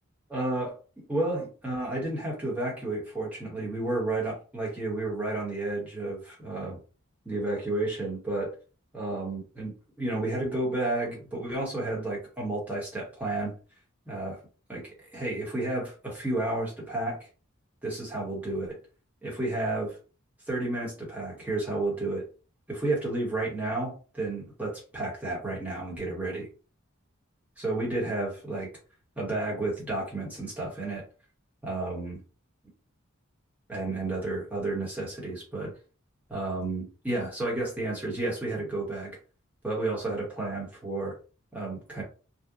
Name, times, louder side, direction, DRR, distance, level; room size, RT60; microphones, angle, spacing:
voice 1, 0.3-0.7 1.1-6.8 7.2-8.5 8.9-13.5 14.1-14.4 14.7-17.2 17.8-18.8 19.2-20.0 20.5-22.2 22.7-26.5 27.6-28.7 29.2-31.0 31.6-32.2 33.7-35.7 36.3-39.2 39.6-41.1 41.5-42.0, right 2 dB, 5° right, -5 dB, 0.9 m, -31 dB
2.7 x 2.1 x 2.3 m, 0.37 s
head